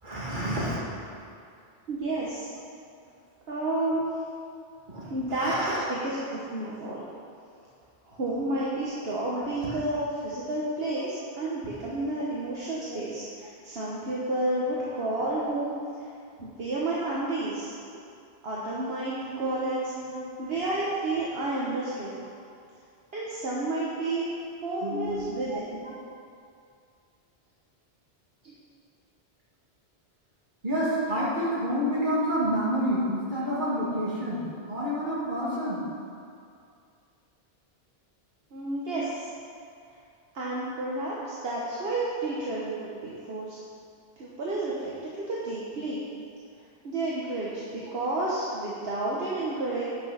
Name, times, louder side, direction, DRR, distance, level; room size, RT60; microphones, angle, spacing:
voice 1, 0.0-1.0 4.9-5.8 9.3-9.7 12.8-13.0 14.6-14.7 14.9-15.0 19.3-19.5 19.9-20.2 24.8-25.6 30.6-34.4 34.7-35.8, equal, 50° right, -7 dB, 2.4 m, -29 dB
voice 2, 1.9-2.5 3.5-4.1 5.1-7.0 8.1-15.7 16.4-17.7 18.4-19.9 20.4-22.1 23.1-24.3 24.6-25.8 28.4-28.5 38.5-39.3 40.3-43.6 44.2-46.0 46.8-49.8, right 2 dB, 70° right, -6 dB, 1.4 m, -31 dB
9.5 x 6.1 x 5.7 m, 2.4 s
omnidirectional pair, 1.1 m